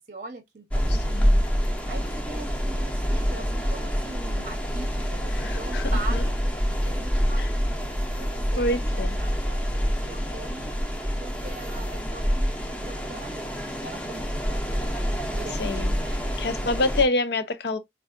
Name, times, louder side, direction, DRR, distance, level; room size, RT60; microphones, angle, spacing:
voice 1, 0.0-1.3 1.7-7.7 8.2-10.7 11.2-15.7 16.0-16.2, right 3 dB, 45° right, 0.7 m, -42 dB
sound 1, 0.7-17.0, equal, 10° left, 0.6 m, -26 dB
voice 2, 0.9-1.4 5.3-6.2 7.4-7.5 8.6-9.2 15.6-15.9 16.4-17.8, left 2 dB, 70° left, 0.6 m, -27 dB
4.5 x 2.3 x 2.4 m
head